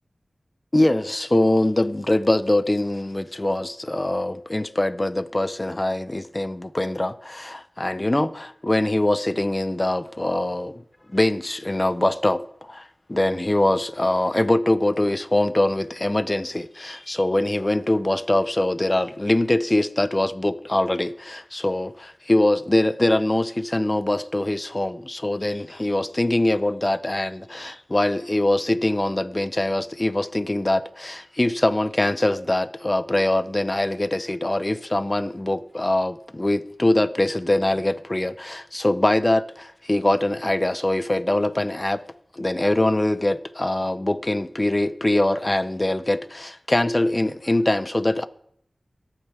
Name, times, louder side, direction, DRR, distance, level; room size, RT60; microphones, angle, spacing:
voice 1, 0.7-10.8 11.1-12.4 12.7-42.0 42.3-48.3, left 1 dB, 30° left, 0.8 m, -23 dB
23.5 x 9.1 x 3.5 m
wide cardioid pair, 50°, 0 cm